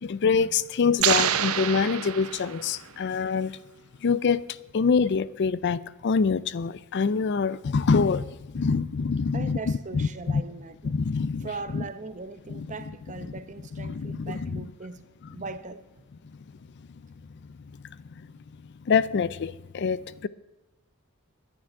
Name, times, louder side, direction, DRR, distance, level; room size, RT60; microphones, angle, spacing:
voice 1, 0.1-3.6 4.0-4.5 4.7-10.4 10.8-11.9 12.5-12.8 13.7-14.7 18.9-20.3, left 5 dB, 50° left, 0.4 m, -25 dB
sound 1, 1.0-2.9, right 10 dB, 75° right, 0.8 m, -26 dB
voice 2, 9.3-10.9 11.4-15.0 15.3-15.8, right 3 dB, 35° right, 0.8 m, -39 dB
11.0 x 9.0 x 9.9 m
head